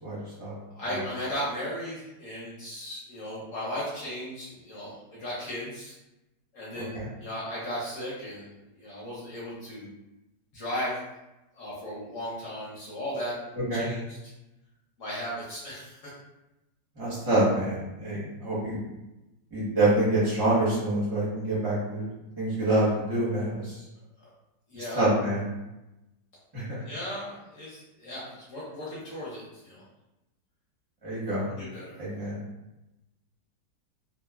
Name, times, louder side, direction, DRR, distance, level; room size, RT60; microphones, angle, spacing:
voice 1, 0.0-0.5 0.9-1.0 6.9-7.1 13.7-13.9 17.0-18.8 19.5-22.1 22.4-23.8 24.8-25.4 26.5-26.9 31.0-31.5 32.0-32.4, right 1 dB, 35° right, -9 dB, 0.4 m, -26 dB
voice 2, 0.7-5.9 6.5-9.9 10.5-11.0 11.5-13.4 13.7-14.2 15.0-16.1 24.2-24.3 24.7-25.1 26.8-29.8 31.5-32.0, equal, 60° left, -6 dB, 1.0 m, -36 dB
3.0 x 2.0 x 2.2 m, 0.96 s
omnidirectional pair, 1.9 m